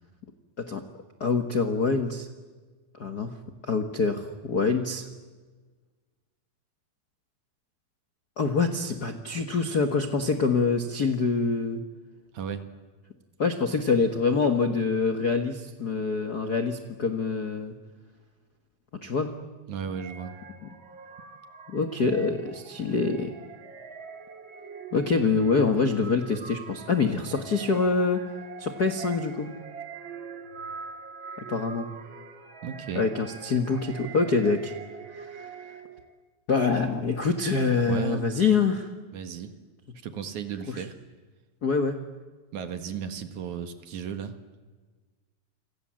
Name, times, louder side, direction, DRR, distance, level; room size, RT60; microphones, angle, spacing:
voice 1, 1.2-2.3 3.0-3.3 3.6-5.1 8.4-11.8 13.4-17.7 19.0-19.3 20.6-20.7 21.7-23.3 24.9-28.2 28.6-29.5 31.4-31.9 32.9-34.7 35.1-35.6 36.5-38.9 40.7-40.8 41.6-42.0, left 4 dB, 55° left, 7 dB, 1.0 m, -25 dB
voice 2, 19.7-20.3 32.6-33.1 37.9-38.3 39.1-39.5 40.0-41.0 42.5-44.3, right 7 dB, 60° right, 9 dB, 2.7 m, -34 dB
sound 1, 19.9-36.2, right 5 dB, 40° right, 2.1 m, -44 dB
29.0 x 26.5 x 7.7 m, 1.4 s
omnidirectional pair, 4.3 m